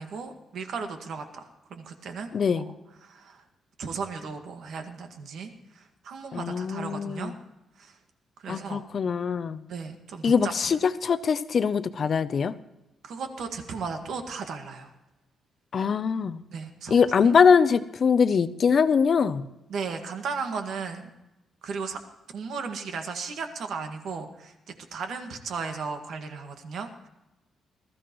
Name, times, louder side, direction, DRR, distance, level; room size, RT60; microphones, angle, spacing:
voice 1, 0.0-2.6 3.0-3.4 3.8-7.3 7.8-8.0 8.4-8.8 9.7-10.8 13.0-14.9 16.5-17.5 19.7-21.1 21.6-22.0 22.3-27.1, right 5 dB, 60° right, 5 dB, 1.9 m, -36 dB
voice 2, 2.3-2.7 6.3-7.3 8.5-9.6 10.2-12.5 15.7-16.4 16.9-19.5, left 6 dB, 40° left, 12 dB, 0.6 m, -22 dB
20.5 x 14.5 x 3.1 m, 0.96 s
cardioid pair, 150°, 0 cm